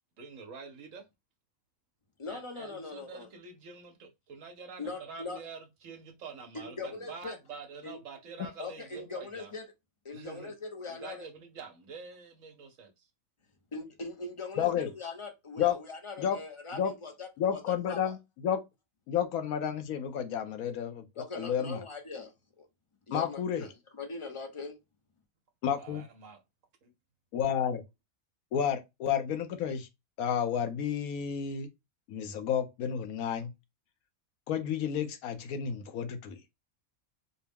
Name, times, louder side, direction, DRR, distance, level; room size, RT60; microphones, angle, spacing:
voice 1, 0.2-1.0 2.3-9.5 10.1-10.5 10.9-12.9 25.8-26.4 26.8-26.9, right 5 dB, 65° right, 1.0 m, -46 dB
voice 2, 2.2-3.3 4.8-5.4 6.5-7.4 7.8-8.0 8.6-9.6 10.0-11.3 13.7-18.2 21.2-22.7 23.1-23.7 24.0-24.8, left 3 dB, 35° left, 0.5 m, -41 dB
voice 3, 14.6-14.9 15.6-15.8 16.2-16.4 16.7-16.9 17.4-18.6 19.1-21.0 21.4-21.8 23.1-23.6 25.6-26.0 27.3-27.8 28.5-29.9 30.2-31.7 32.1-33.5 34.5-36.4, left 8 dB, 80° left, 1.1 m, -31 dB
4.5 x 2.1 x 3.4 m
omnidirectional pair, 1.5 m